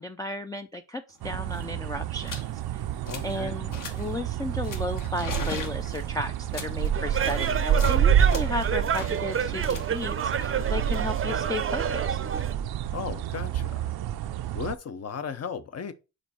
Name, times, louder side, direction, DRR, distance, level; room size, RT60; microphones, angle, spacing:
voice 1, 0.0-2.9 3.2-12.2, left 2 dB, 10° left, 0.4 m, -34 dB
sound 1, 1.2-1.3 1.4-1.7 2.2-2.5 2.8-3.4 3.7-4.2 4.6-8.0 8.3-11.3, left 4 dB, 55° left, 1.6 m, -40 dB
sound 2, 1.2-14.8, right 9 dB, 75° right, 0.6 m, -28 dB
voice 2, 3.0-3.7 12.9-13.9 14.5-15.9, left 6 dB, 40° left, 0.8 m, -36 dB
sound 3, 6.9-12.5, right 7 dB, 35° right, 0.6 m, -29 dB
5.1 x 4.4 x 4.2 m
cardioid pair, 90°, 38 cm